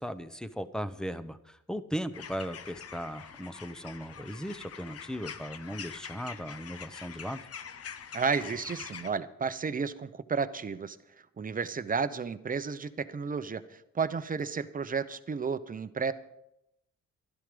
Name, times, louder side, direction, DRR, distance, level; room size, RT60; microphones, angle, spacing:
voice 1, 0.0-7.4, equal, ahead, 11 dB, 0.8 m, -37 dB
sound 1, 2.1-9.1, left 7 dB, 50° left, 1.0 m, -45 dB
voice 2, 8.1-11.0 11.4-16.1, right 5 dB, 30° right, 12 dB, 0.8 m, -32 dB
12.5 x 11.5 x 5.2 m, 0.83 s
cardioid pair, 90°, 30 cm